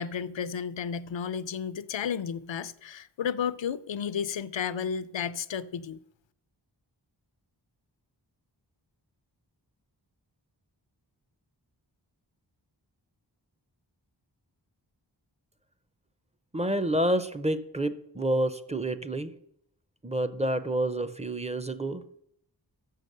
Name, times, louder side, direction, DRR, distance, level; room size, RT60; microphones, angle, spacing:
voice 1, 0.0-6.0, left 7 dB, 80° left, 0.5 m, -32 dB
voice 2, 16.5-19.3 20.0-22.0, right 1 dB, 15° right, 0.6 m, -28 dB
6.9 x 6.5 x 6.6 m
wide cardioid pair, 50°, 44 cm